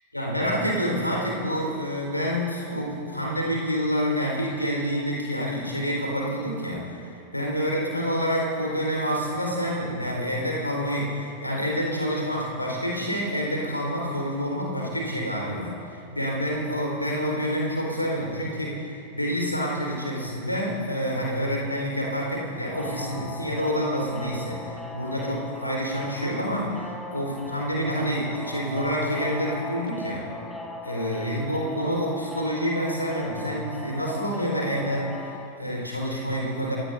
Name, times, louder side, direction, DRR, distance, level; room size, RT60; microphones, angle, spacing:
voice 1, 0.1-30.3 30.8-36.8, equal, 85° left, -2 dB, 4.4 m, -28 dB
sound 1, 22.7-35.5, left 2 dB, 5° left, 1.5 m, -39 dB
28.0 x 17.5 x 2.7 m, 2.7 s
figure-of-eight pair, 90°, 0 cm